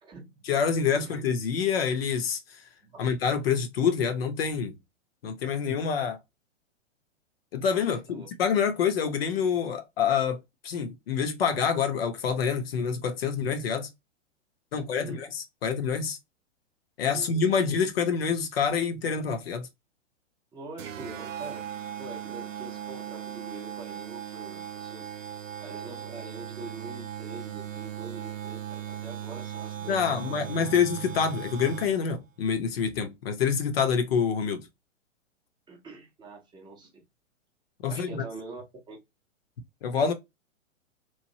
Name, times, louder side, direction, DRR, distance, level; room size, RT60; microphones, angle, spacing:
voice 1, 0.5-2.4 3.0-4.8 5.2-6.2 7.5-10.4 10.6-13.9 14.7-16.2 17.0-19.7 29.9-34.6 37.8-38.2 39.8-40.1, left 6 dB, 50° left, 0.7 m, -27 dB
voice 2, 7.8-8.3 14.7-15.2 17.1-17.3 20.5-21.7 22.0-25.1 25.3-30.6 35.7-37.0 37.9-39.0, right 3 dB, 10° right, 0.6 m, -44 dB
sound 1, 20.8-32.2, right 10 dB, 85° right, 0.5 m, -38 dB
3.1 x 2.5 x 2.7 m
figure-of-eight pair, 115°, 38 cm